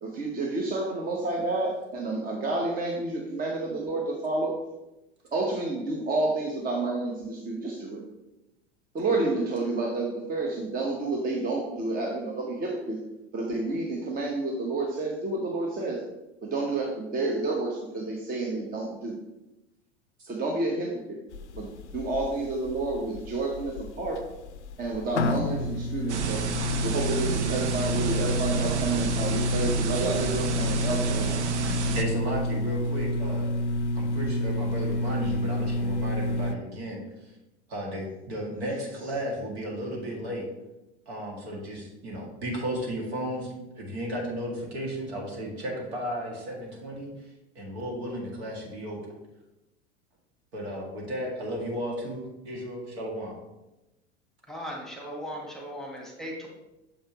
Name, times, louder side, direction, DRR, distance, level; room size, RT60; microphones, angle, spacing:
voice 1, 0.0-4.5 5.3-8.0 8.9-13.0 13.3-16.0 16.4-19.2 20.3-21.2 21.5-24.2 24.8-26.5 26.8-31.4, right 2 dB, 25° right, -1 dB, 1.0 m, -30 dB
sound 1, 21.3-36.5, left 1 dB, 80° left, 0.5 m, -29 dB
sound 2, 26.1-32.0, right 4 dB, 80° right, 0.7 m, -30 dB
voice 2, 31.9-33.5 34.0-37.0 37.7-40.4 41.1-47.1 47.6-49.2 50.5-53.3, equal, 65° right, -1 dB, 2.0 m, -34 dB
voice 3, 54.5-56.5, equal, ahead, -1 dB, 1.3 m, -37 dB
6.9 x 5.4 x 2.9 m, 0.97 s
figure-of-eight pair, 85°, 34 cm